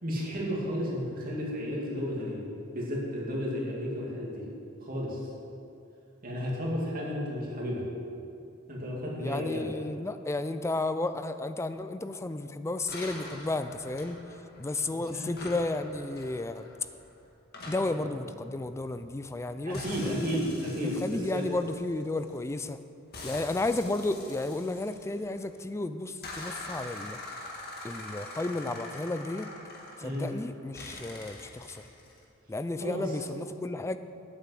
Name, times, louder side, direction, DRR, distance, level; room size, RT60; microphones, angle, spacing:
voice 1, 0.0-2.4 2.7-4.5 4.8-5.2 6.2-7.8 8.7-9.7 14.9-15.3 19.6-21.4 30.0-30.2 32.8-33.2, equal, 45° right, -4 dB, 2.4 m, -33 dB
voice 2, 9.2-14.2 14.6-16.7 17.7-20.3 21.0-22.8 23.2-27.2 27.8-29.5 30.0-31.8 32.5-34.0, left 2 dB, 15° left, 11 dB, 0.3 m, -33 dB
sound 1, 12.9-14.9 15.3-19.4 19.7-22.5 23.1-25.6 26.2-30.4 30.7-32.2, left 2 dB, 50° left, 1.8 m, -44 dB
8.9 x 7.3 x 7.7 m, 2.6 s
head